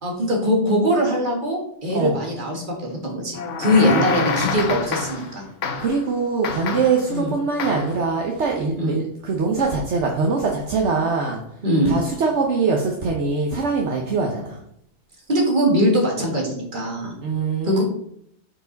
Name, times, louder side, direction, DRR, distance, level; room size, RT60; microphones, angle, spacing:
voice 1, 0.0-5.4 7.1-7.3 8.8-9.0 11.6-11.9 15.3-17.2 17.6-17.8, equal, 40° right, -1 dB, 1.9 m, -21 dB
sound 1, 3.3-5.3 5.6-6.0 6.4-7.1 7.6-8.0, left 5 dB, 70° left, 1.1 m, -27 dB
voice 2, 3.8-4.7 5.8-11.4 11.9-14.6 17.2-17.8, right 4 dB, 65° right, 0 dB, 1.2 m, -23 dB
7.6 x 4.7 x 4.0 m, 0.71 s
omnidirectional pair, 1.3 m